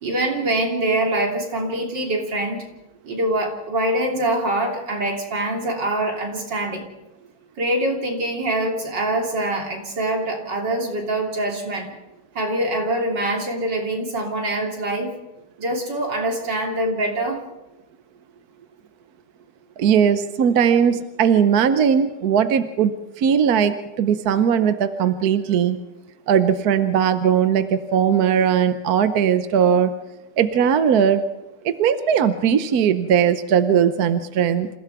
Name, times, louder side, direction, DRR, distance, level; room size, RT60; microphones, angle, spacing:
voice 1, 0.0-2.6 3.0-6.8 7.6-11.9 12.4-15.1 15.6-17.4, right 1 dB, 90° right, 1 dB, 3.9 m, -24 dB
voice 2, 19.8-22.9 23.2-25.8 26.3-29.9 30.4-31.2 31.6-34.7, right 8 dB, 65° right, 10 dB, 1.3 m, -19 dB
27.5 x 15.5 x 6.0 m, 1.0 s
omnidirectional pair, 1.9 m